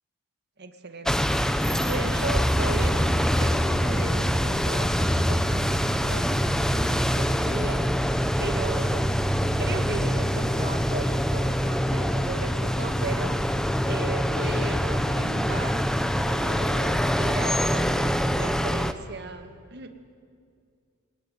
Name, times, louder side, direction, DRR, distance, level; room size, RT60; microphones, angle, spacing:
voice 1, 0.6-1.3 1.8-7.8 8.4-9.1 9.6-13.4 13.8-15.8 16.2-17.9 18.3-19.9, right 3 dB, 50° right, 6 dB, 1.9 m, -36 dB
sound 1, 1.1-18.9, equal, 5° left, 0.8 m, -24 dB
22.5 x 19.0 x 9.3 m, 2.2 s
head